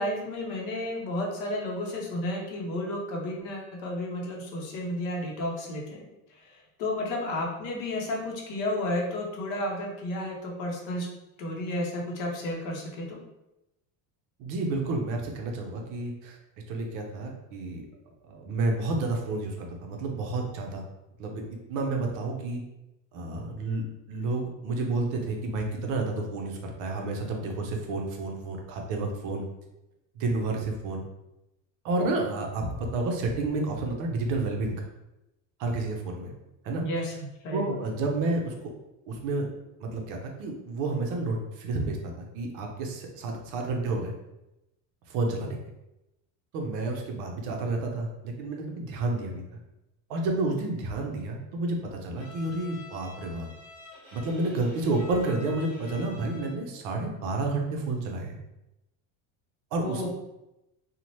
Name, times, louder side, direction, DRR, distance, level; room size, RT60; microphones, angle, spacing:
voice 1, 0.0-6.1 6.3-11.1 11.4-13.2 36.8-37.8 59.8-60.1, left 1 dB, 55° left, 0 dB, 0.7 m, -32 dB
voice 2, 14.4-16.4 16.7-17.8 18.3-19.6 19.8-20.8 21.2-21.4 21.7-22.6 23.1-29.5 30.2-31.0 31.8-34.9 35.6-36.3 36.6-36.8 37.5-38.7 39.1-39.5 39.8-44.1 45.1-45.6 46.5-49.4 50.1-53.5 54.1-58.4 59.7-60.1, right 2 dB, 55° right, 2 dB, 0.6 m, -30 dB
Bowed string instrument, 52.2-56.7, left 4 dB, 15° left, 1.4 m, -48 dB
2.7 x 2.1 x 3.0 m, 0.92 s
cardioid pair, 165°, 37 cm